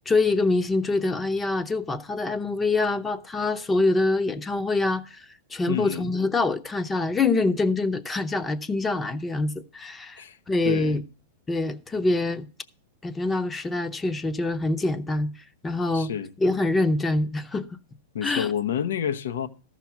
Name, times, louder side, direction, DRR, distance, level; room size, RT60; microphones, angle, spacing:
voice 1, 0.1-5.2 5.5-10.2 10.5-11.0 11.5-12.5 13.0-15.3 15.6-16.1 16.4-17.7 18.2-18.5, left 3 dB, 15° left, 0.7 m, -25 dB
voice 2, 5.7-6.1 10.2-10.4 10.6-11.0 15.9-16.3 18.1-19.5, left 8 dB, 80° left, 0.8 m, -29 dB
13.5 x 5.9 x 5.8 m
hypercardioid pair, 140°, 0 cm